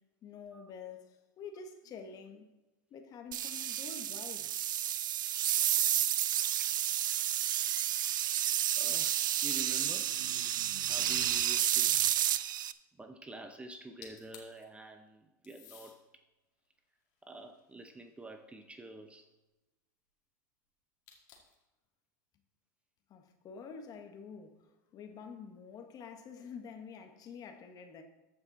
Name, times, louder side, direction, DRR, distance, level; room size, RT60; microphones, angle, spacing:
voice 1, 0.2-2.5 2.9-4.7 23.1-28.0, left 6 dB, 40° left, 1.5 m, -48 dB
sound 1, 3.3-12.7, right 11 dB, 80° right, 0.5 m, -31 dB
voice 2, 8.1-8.5 8.8-10.1 10.9-11.9 13.0-16.0 17.2-19.3, right 2 dB, 10° right, 0.8 m, -48 dB
sound 2, 14.0-14.6 15.4-16.0 16.6-18.1 21.1-21.6, left 9 dB, 65° left, 2.3 m, -56 dB
14.0 x 5.6 x 4.1 m
hypercardioid pair, 105°, 10 cm